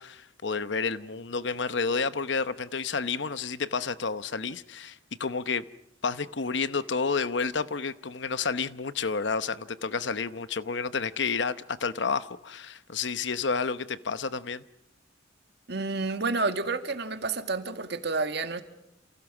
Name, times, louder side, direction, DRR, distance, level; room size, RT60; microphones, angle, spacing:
voice 1, 0.0-5.6 6.0-14.6, left 5 dB, 65° left, 0.9 m, -30 dB
voice 2, 15.7-18.6, right 3 dB, 60° right, 2.0 m, -29 dB
29.0 x 28.5 x 6.1 m
head